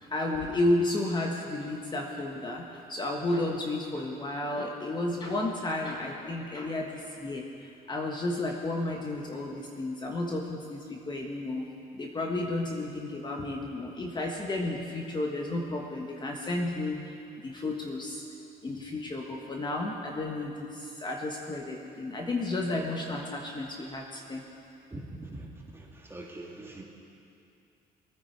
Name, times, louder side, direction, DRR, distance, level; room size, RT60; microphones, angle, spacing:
voice 1, 0.0-11.7 11.9-17.0 17.4-18.2 18.6-24.4, left 2 dB, 25° left, 0 dB, 1.4 m, -32 dB
voice 2, 24.9-25.5 25.7-26.8, right 2 dB, 15° right, -2 dB, 2.4 m, -42 dB
22.5 x 9.6 x 4.6 m, 2.7 s
cardioid pair, 110°, 17 cm